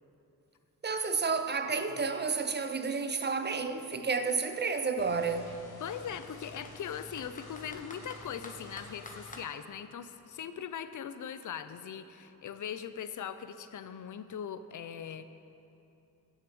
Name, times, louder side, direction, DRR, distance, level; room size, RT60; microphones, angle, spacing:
voice 1, 0.8-5.6, right 4 dB, 30° right, 0.5 m, -31 dB
Computer keyboard, 1.6-3.5 4.3-4.5 4.8-4.9 5.5-6.8 7.2-9.5, left 2 dB, 20° left, 0.8 m, -50 dB
sound 1, 5.0-9.4, left 2 dB, 85° left, 1.1 m, -50 dB
voice 2, 5.8-15.3, left 8 dB, 55° left, 0.5 m, -40 dB
10.0 x 6.4 x 6.2 m
wide cardioid pair, 125°, 37 cm